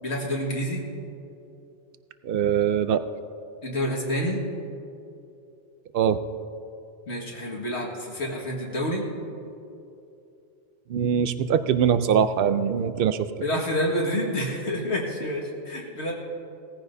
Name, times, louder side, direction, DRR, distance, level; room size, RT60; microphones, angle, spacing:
voice 1, 0.0-0.9 3.6-4.4 7.1-9.1 13.4-16.1, equal, 65° left, -3 dB, 2.1 m, -28 dB
voice 2, 2.2-3.0 5.9-6.2 10.9-13.3, right 8 dB, 60° right, 11 dB, 0.7 m, -22 dB
18.5 x 14.5 x 2.7 m, 2.7 s
omnidirectional pair, 1.2 m